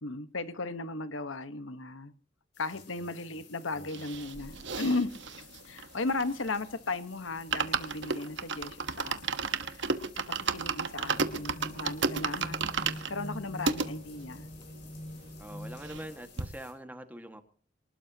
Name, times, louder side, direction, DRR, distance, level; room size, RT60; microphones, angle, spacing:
voice 1, 0.0-2.1 2.6-5.1 5.6-9.4 9.7-9.9 10.3-12.6 13.1-14.5, left 3 dB, 80° left, 12 dB, 1.3 m, -36 dB
sound 1, 2.5-16.7, left 6 dB, 55° left, 7.0 m, -56 dB
sound 2, 3.9-6.7 7.0-7.1 7.3-13.9 14.5-14.6 14.7-14.8 15.1-16.1 16.4-16.5, right 4 dB, 65° right, 1.3 m, -33 dB
sound 3, 11.0-16.0, equal, 40° left, 5.6 m, -44 dB
voice 2, 15.4-17.4, right 1 dB, 10° right, 7 dB, 1.8 m, -44 dB
24.5 x 19.5 x 2.9 m, 0.43 s
head